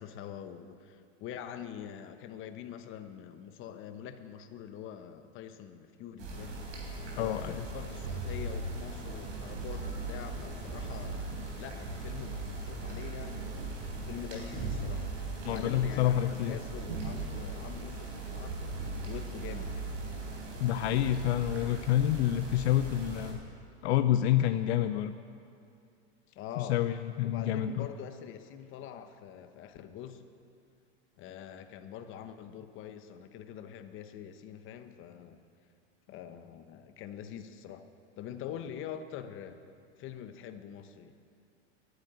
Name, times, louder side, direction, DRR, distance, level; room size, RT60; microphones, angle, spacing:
voice 1, 0.0-6.6 7.1-13.8 14.0-19.9 26.4-26.8 27.2-30.2 31.2-35.4 36.1-37.8 38.2-39.6 40.0-41.2, left 9 dB, 35° left, 9 dB, 1.0 m, -44 dB
sound 1, 6.2-23.3, right 3 dB, 50° right, 3.9 m, -39 dB
voice 2, 7.2-7.7 15.4-16.6 20.6-23.4 23.8-25.1 26.6-27.9, left 12 dB, 70° left, 10 dB, 0.6 m, -28 dB
11.5 x 9.2 x 8.8 m, 2.5 s
hypercardioid pair, 120°, 33 cm